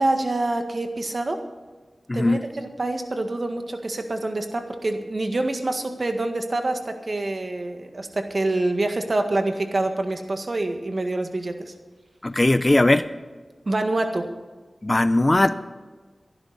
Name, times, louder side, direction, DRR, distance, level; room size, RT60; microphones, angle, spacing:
voice 1, 0.0-1.4 2.1-11.7 13.6-14.3, right 2 dB, 55° right, 6 dB, 1.7 m, -26 dB
voice 2, 2.1-2.4 12.2-13.1 14.8-15.6, left 1 dB, 30° left, 12 dB, 0.6 m, -19 dB
23.0 x 11.0 x 4.2 m, 1.3 s
wide cardioid pair, 60°, 0 cm